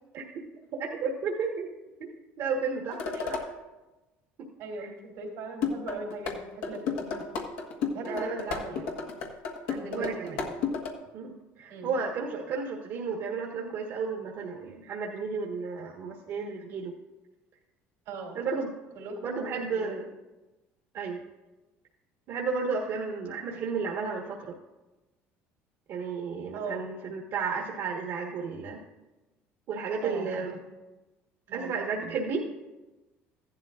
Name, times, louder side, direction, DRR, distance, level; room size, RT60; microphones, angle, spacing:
voice 1, 0.8-1.7 2.0-2.1 2.4-3.5 4.8-4.9 8.0-8.4 9.9-10.3 11.1-16.9 18.3-18.7 19.2-20.0 20.9-21.2 22.3-24.6 25.9-28.8 29.7-30.6 31.5-32.5, right 5 dB, 60° right, -1 dB, 1.4 m, -32 dB
sound 1, 2.9-3.5 5.6-6.4 6.6-10.9, left 5 dB, 85° left, 1.5 m, -32 dB
voice 2, 4.6-7.2 7.7-8.9 9.7-10.5 11.7-11.9 18.1-18.4 18.9-20.0 26.5-26.8 30.0-30.5 31.5-31.8, right 3 dB, 80° right, 0 dB, 2.9 m, -39 dB
15.0 x 11.5 x 2.5 m, 1.1 s
supercardioid pair, 90°, 6 cm